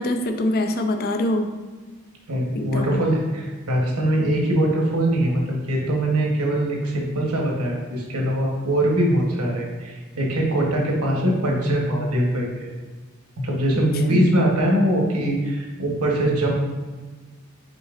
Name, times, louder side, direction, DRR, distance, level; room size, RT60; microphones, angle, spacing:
voice 1, 0.0-1.5 2.5-3.0 14.1-14.3, left 1 dB, 45° left, 6 dB, 0.4 m, -24 dB
voice 2, 2.3-12.7 13.4-16.5, right 1 dB, 90° right, -1 dB, 1.1 m, -22 dB
5.3 x 4.0 x 2.5 m, 1.3 s
head